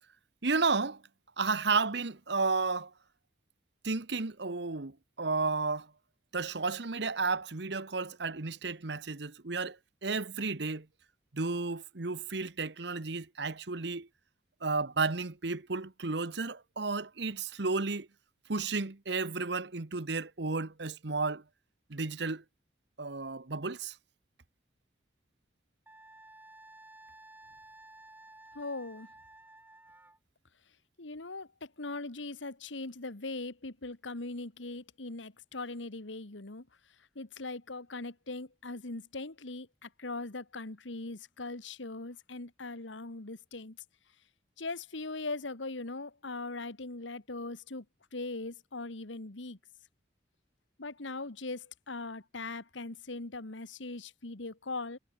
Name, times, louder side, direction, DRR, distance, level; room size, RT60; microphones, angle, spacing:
voice 1, 0.4-1.0 1.4-2.9 3.8-5.9 6.3-9.8 10.0-10.9 11.3-14.1 14.6-18.1 18.5-21.4 21.9-22.4 23.0-23.9, right 4 dB, 65° right, 1.1 m, -32 dB
Wind instrument woodwind instrument, 25.9-30.2, right 2 dB, 10° right, 6.2 m, -54 dB
voice 2, 28.6-29.1 31.0-36.6 37.2-43.8 44.6-47.8 48.1-49.6 50.8-55.0, left 3 dB, 80° left, 1.7 m, -40 dB
head